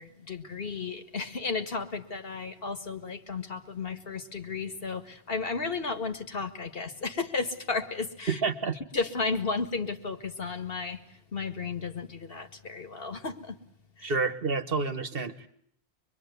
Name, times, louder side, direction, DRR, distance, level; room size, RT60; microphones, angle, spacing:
voice 1, 0.0-8.4 8.9-11.0 11.3-13.6 14.0-14.1, left 4 dB, 60° left, 9 dB, 2.0 m, -33 dB
voice 2, 8.3-8.8 14.0-15.5, right 4 dB, 60° right, 10 dB, 1.5 m, -29 dB
25.0 x 22.5 x 9.3 m, 0.65 s
omnidirectional pair, 1.1 m